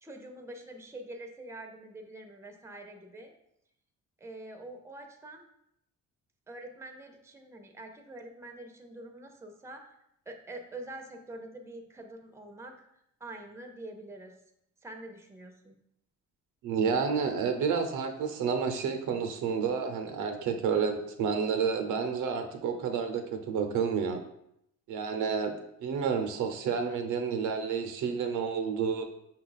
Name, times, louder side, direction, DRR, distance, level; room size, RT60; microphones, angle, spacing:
voice 1, 0.0-3.3 4.2-5.5 6.5-9.9 10.3-12.9 13.2-14.3 14.8-15.8, right 2 dB, 10° right, 4 dB, 0.6 m, -45 dB
voice 2, 16.6-24.2 24.9-25.5 25.8-29.0, right 6 dB, 80° right, 6 dB, 0.7 m, -30 dB
5.5 x 2.3 x 3.9 m, 0.78 s
cardioid pair, 90°, 30 cm